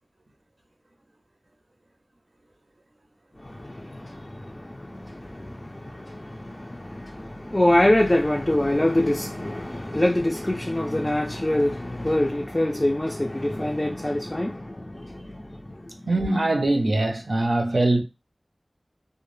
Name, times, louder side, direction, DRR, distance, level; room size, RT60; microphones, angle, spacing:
voice 1, 3.4-15.9, left 1 dB, 30° left, 0.3 m, -25 dB
voice 2, 16.1-18.0, right 2 dB, 80° right, 0.4 m, -22 dB
2.2 x 2.0 x 3.0 m
wide cardioid pair, 50°, 0 cm